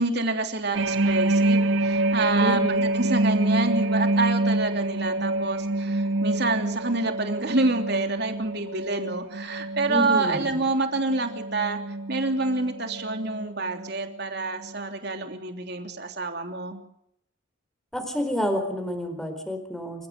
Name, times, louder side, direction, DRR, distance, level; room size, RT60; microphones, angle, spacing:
voice 1, 0.0-11.8 12.1-16.8, right 3 dB, 55° right, 5 dB, 3.2 m, -27 dB
sound 1, 0.7-14.3 14.6-14.9, right 2 dB, 75° right, 1.4 m, -26 dB
voice 2, 2.4-2.8 9.9-10.6 17.9-20.1, equal, ahead, 6 dB, 4.5 m, -29 dB
28.5 x 16.0 x 6.7 m, 0.76 s
head